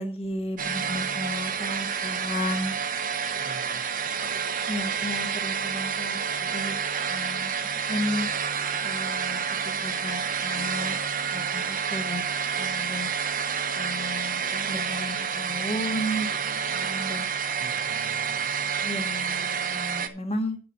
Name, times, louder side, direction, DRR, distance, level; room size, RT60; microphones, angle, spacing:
voice 1, 0.0-2.7 4.7-6.2 6.5-6.8 7.1-7.5 7.9-8.3 8.8-11.0 11.3-12.3 12.6-13.1 13.7-16.3 16.6-17.3 18.8-20.6, left 1 dB, 30° left, 5 dB, 1.7 m, -33 dB
sound 1, 0.6-20.1, right 6 dB, 45° right, 1.0 m, -29 dB
voice 2, 3.4-4.4 4.9-5.1 17.6-18.6, right 2 dB, 70° right, 8 dB, 1.1 m, -48 dB
9.7 x 6.8 x 5.2 m, 0.38 s
head